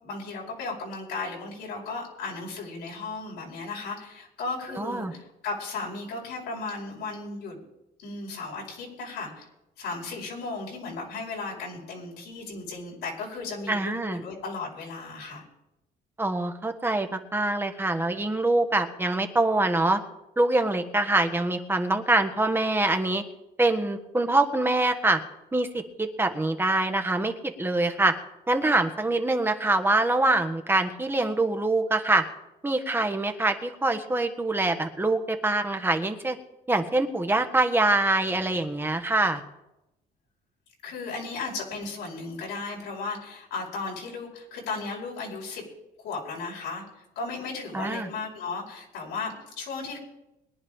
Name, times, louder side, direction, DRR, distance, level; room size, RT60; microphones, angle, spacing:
voice 1, 0.0-7.6 8.0-9.5 9.8-15.4 40.8-45.6 46.0-50.0, left 3 dB, 85° left, -3 dB, 4.9 m, -35 dB
voice 2, 4.8-5.1 13.7-14.2 16.2-20.0 20.4-23.2 23.6-25.2 25.5-25.7 26.0-28.1 28.5-32.2 32.6-36.4 36.7-39.4 47.7-48.1, right 2 dB, 15° right, 6 dB, 1.5 m, -24 dB
22.5 x 10.5 x 3.7 m, 0.89 s
cardioid pair, 110°, 17 cm